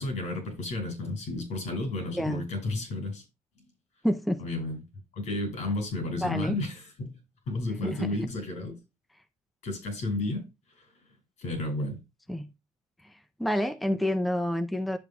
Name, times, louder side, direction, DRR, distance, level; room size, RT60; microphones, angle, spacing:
voice 1, 0.0-3.2 4.4-4.8 5.1-7.1 7.5-8.7 9.6-10.4 11.4-12.0, left 2 dB, 80° left, 6.0 m, -32 dB
voice 2, 2.1-2.4 4.0-4.4 6.2-6.6 7.8-8.1 12.3-12.5 13.4-15.0, equal, ahead, 0.6 m, -28 dB
10.5 x 8.1 x 2.3 m
cardioid pair, 130°, 12 cm